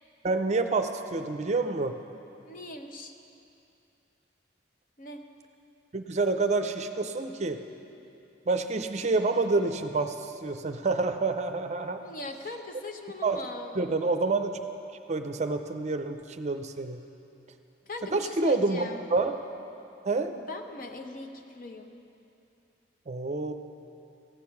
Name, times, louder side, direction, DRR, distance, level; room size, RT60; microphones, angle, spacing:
voice 1, 0.2-2.0 5.9-7.6 8.5-12.0 13.2-13.4 13.8-14.5 15.1-17.0 18.1-18.8 19.1-19.4 20.0-20.4 23.1-23.5, right 3 dB, 40° right, 8 dB, 0.5 m, -28 dB
voice 2, 2.4-3.1 5.0-5.2 12.0-13.9 17.9-19.0 20.4-22.0, left 2 dB, 50° left, 4 dB, 0.8 m, -40 dB
15.0 x 8.3 x 5.8 m, 2.7 s
head